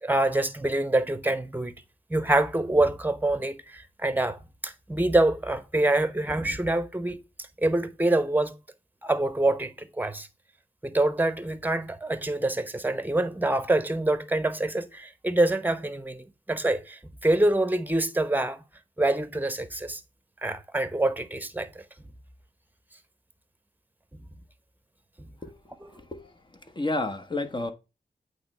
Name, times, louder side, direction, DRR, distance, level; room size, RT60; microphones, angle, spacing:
voice 1, 0.0-1.7 2.1-7.2 7.6-8.5 9.0-10.3 10.8-18.6 19.0-20.0 20.4-21.8 24.1-24.2 25.2-25.3 25.8-25.9, right 2 dB, 10° right, 1.0 m, -26 dB
voice 2, 25.9-26.2 26.7-27.7, left 2 dB, 30° left, 1.3 m, -30 dB
8.5 x 3.3 x 5.5 m
cardioid pair, 55°, 15 cm